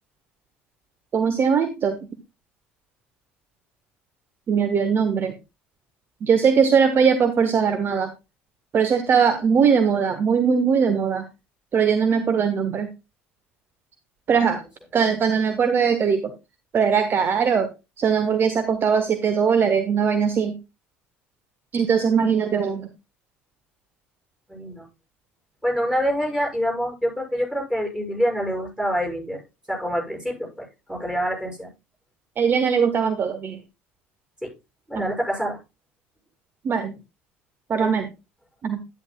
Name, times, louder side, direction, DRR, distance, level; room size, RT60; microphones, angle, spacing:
voice 1, 1.1-2.0 4.5-5.3 6.2-8.1 8.7-11.2 11.7-12.9 14.3-14.6 14.9-16.3 16.7-17.7 18.0-20.6 21.7-22.9 32.4-33.6 34.9-35.1 36.6-37.0 37.7-38.1 38.6-38.8, right 6 dB, 35° right, 9 dB, 1.0 m, -20 dB
voice 2, 24.5-24.8 25.6-29.4 29.7-31.7 34.4-34.5 34.9-35.6 37.8-37.9, equal, 10° right, 0 dB, 6.5 m, -26 dB
11.0 x 9.8 x 2.3 m, 0.25 s
figure-of-eight pair, 60°, 6 cm